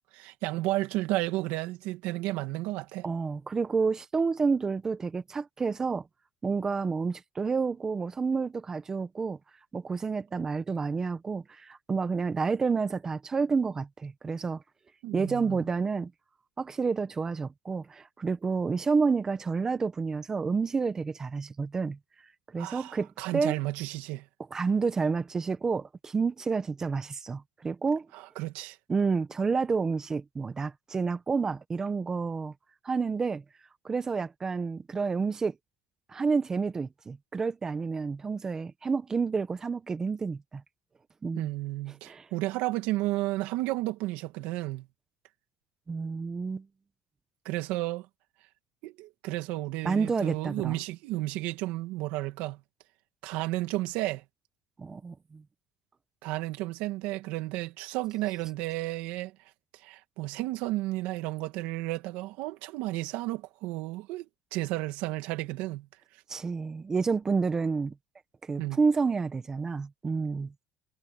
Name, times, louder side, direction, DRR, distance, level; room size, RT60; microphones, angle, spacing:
voice 1, 0.1-3.1 15.0-15.6 22.6-24.3 28.1-28.8 41.4-44.9 47.4-48.1 48.8-52.6 53.2-54.2 56.2-59.3 59.7-65.9 68.6-68.8, right 18 dB, 80° right, 2.3 m, -32 dB
voice 2, 3.0-6.1 6.4-9.4 9.7-14.6 15.1-16.1 16.6-22.3 22.5-23.1 23.3-23.6 24.5-28.1 28.9-32.5 32.8-33.4 33.8-35.5 36.1-40.6 41.2-41.5 41.9-42.3 45.9-46.7 49.8-50.8 54.8-55.4 66.3-67.9 68.4-70.5, right 4 dB, 20° right, 1.0 m, -29 dB
cardioid pair, 125°, 3 cm